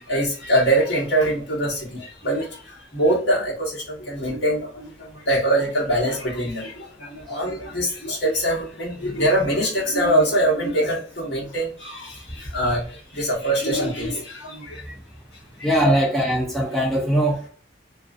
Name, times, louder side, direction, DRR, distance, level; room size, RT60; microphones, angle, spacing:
voice 1, 0.0-2.5 2.9-12.8 13.1-14.8 15.6-15.7, right 1 dB, 65° left, 1.1 m, -23 dB
voice 2, 15.6-17.5, equal, ahead, 0.4 m, -21 dB
2.5 x 2.3 x 2.4 m
head